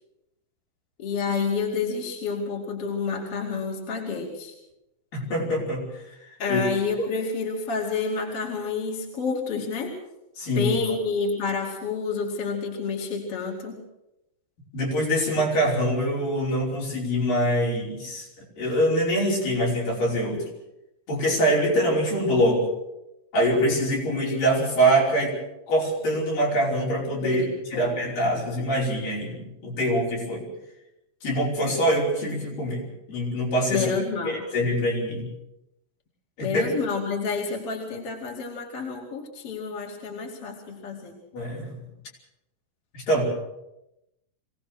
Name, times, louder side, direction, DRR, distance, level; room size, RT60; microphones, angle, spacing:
voice 1, 1.0-4.5 6.4-9.9 10.6-13.8 27.2-27.5 27.7-28.4 33.7-34.5 36.4-41.2, left 5 dB, 45° left, 0 dB, 3.4 m, -29 dB
voice 2, 5.1-6.0 6.5-6.6 10.4-10.8 14.7-18.3 18.6-20.4 21.1-22.7 23.3-25.4 25.7-27.4 27.7-30.4 31.2-33.9 34.3-35.3 36.4-36.7 41.3-41.8 42.9-43.2, equal, 70° left, -3 dB, 6.9 m, -24 dB
24.0 x 17.5 x 6.4 m, 0.89 s
omnidirectional pair, 4.1 m